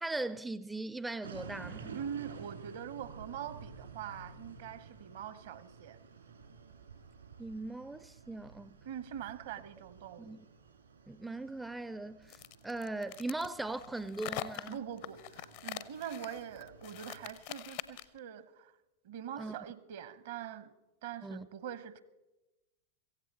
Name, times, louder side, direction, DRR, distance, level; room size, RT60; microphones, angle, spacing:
voice 1, 0.0-2.0 7.4-8.8 10.2-10.4 11.1-12.4 12.6-14.8 19.4-19.6 21.2-21.5, right 2 dB, 5° right, 0.4 m, -39 dB
sound 1, 1.2-17.3, right 5 dB, 70° right, 2.0 m, -52 dB
voice 2, 1.9-6.0 8.8-10.4 14.7-18.7 19.0-20.7 21.0-22.0, right 9 dB, 55° right, 0.9 m, -43 dB
sound 2, 12.3-18.2, left 13 dB, 50° left, 0.6 m, -44 dB
16.0 x 16.0 x 4.1 m
figure-of-eight pair, 90°, 0 cm